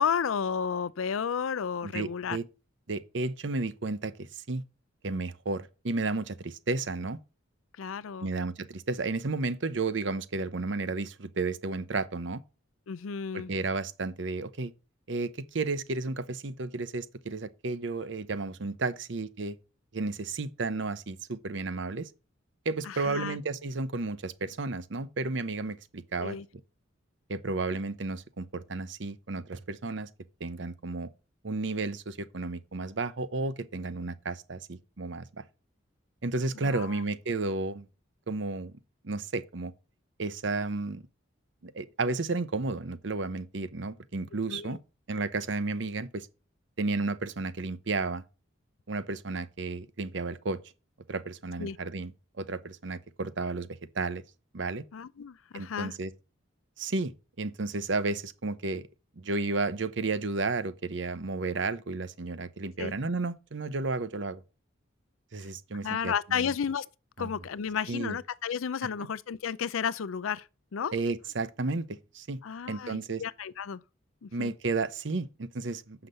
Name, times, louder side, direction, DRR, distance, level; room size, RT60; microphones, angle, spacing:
voice 1, 0.0-2.4 7.8-8.3 12.9-13.5 22.8-23.4 26.2-26.4 36.6-37.0 44.5-44.8 51.6-51.8 54.9-55.9 62.8-62.9 65.8-66.9 67.2-70.9 72.4-73.8 74.2-74.5, left 7 dB, 90° left, 0.5 m, -32 dB
voice 2, 1.8-2.4 2.9-4.6 5.0-7.2 8.2-12.4 13.3-14.7 15.1-19.6 19.9-22.1 22.6-26.4 27.3-30.1 30.4-31.1 31.4-35.4 36.2-37.9 38.3-38.7 39.0-39.7 40.2-41.0 41.6-44.8 45.1-46.3 46.8-48.2 48.9-50.6 51.1-52.1 52.4-54.2 54.5-54.8 55.5-56.1 56.8-58.8 59.2-64.4 65.3-66.5 67.2-67.3 67.9-68.2 70.9-72.4 72.7-73.2 74.3-76.1, right 3 dB, 65° right, 0.8 m, -32 dB
7.8 x 5.9 x 6.7 m
head